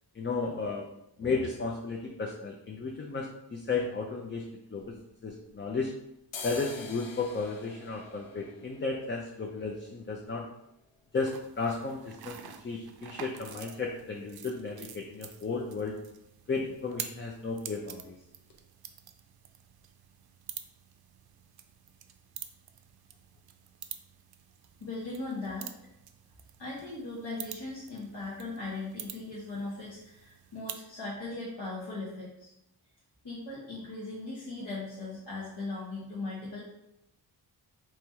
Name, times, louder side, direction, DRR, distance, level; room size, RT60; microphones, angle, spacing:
voice 1, 0.1-0.9 1.2-4.5 4.7-4.9 5.2-5.9 6.4-10.5 11.1-16.0 16.5-18.2, left 4 dB, 25° left, 0 dB, 0.5 m, -34 dB
sound 1, 4.8-5.8 6.2-13.9 14.2-14.3 14.5-15.1 15.4-15.6 15.9-16.1 16.4-17.1 17.5-17.6 18.1-18.2 18.5-18.6, left 4 dB, 90° left, 0.7 m, -49 dB
sound 2, 11.1-30.9, right 9 dB, 60° right, 0.5 m, -47 dB
voice 2, 24.8-25.7 26.6-32.5 33.2-36.6, left 2 dB, 65° left, -7 dB, 1.3 m, -38 dB
3.4 x 3.0 x 4.6 m, 0.83 s
wide cardioid pair, 90°, 43 cm